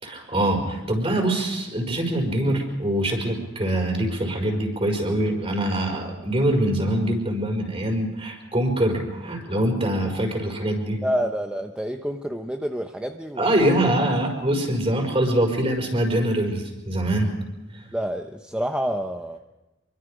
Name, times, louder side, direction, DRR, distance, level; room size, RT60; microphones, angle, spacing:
voice 1, 0.0-11.0 13.4-17.3 17.7-17.9, right 1 dB, 30° right, 2 dB, 5.4 m, -24 dB
voice 2, 11.0-13.4 17.9-19.4, equal, 5° right, 5 dB, 0.8 m, -28 dB
26.0 x 24.0 x 5.1 m, 1.0 s
head